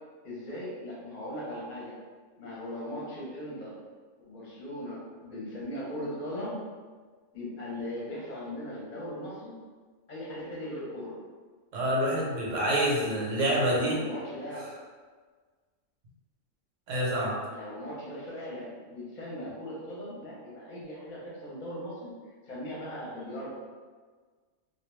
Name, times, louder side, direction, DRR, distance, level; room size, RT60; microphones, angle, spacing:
voice 1, 0.2-2.0 2.4-3.8 4.3-6.6 7.3-9.6 10.1-11.2 13.6-14.7 17.5-22.1 22.5-23.5, left 1 dB, 45° left, -6 dB, 0.7 m, -39 dB
voice 2, 11.7-14.0 14.5-14.6 16.9-17.4, right 1 dB, 85° right, -4 dB, 1.0 m, -27 dB
2.3 x 2.2 x 3.2 m, 1.5 s
omnidirectional pair, 1.3 m